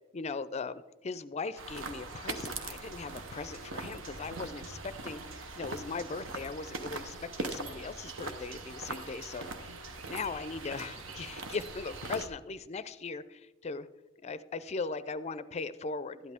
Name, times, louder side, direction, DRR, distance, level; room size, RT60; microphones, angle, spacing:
voice 1, 0.1-9.8 10.0-13.9 14.2-16.3, left 4 dB, 35° left, 15 dB, 0.4 m, -39 dB
sound 1, 1.6-12.3, right 3 dB, 75° right, 1.0 m, -41 dB
12.5 x 11.0 x 3.5 m, 1.1 s
head